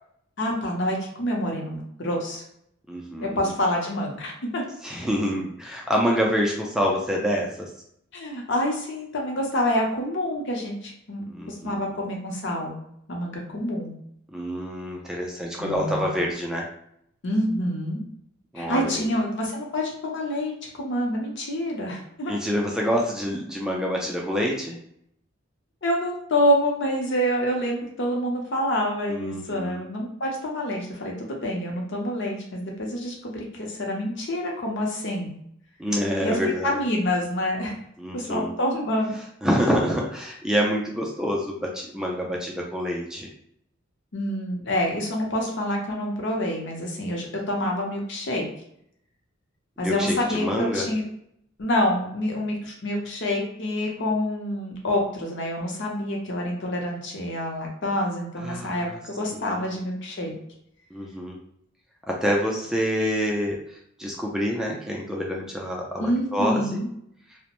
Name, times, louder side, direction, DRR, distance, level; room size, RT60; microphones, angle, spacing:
voice 1, 0.4-2.4 3.2-4.6 8.1-12.8 13.1-13.9 15.6-16.1 17.2-18.0 18.6-22.4 25.8-35.3 36.2-37.7 38.1-39.2 44.1-48.4 49.8-51.0 51.6-60.3 66.0-66.9, left 1 dB, 60° left, 0 dB, 0.7 m, -27 dB
voice 2, 2.9-3.5 4.8-7.7 11.3-11.8 14.3-16.7 18.5-19.1 22.3-24.8 29.1-29.8 35.8-36.8 38.0-38.5 39.4-43.3 49.8-50.9 58.4-59.0 59.3-59.5 60.9-61.4 62.1-66.8, equal, 5° right, -2 dB, 0.3 m, -27 dB
2.4 x 2.1 x 2.9 m, 0.72 s
head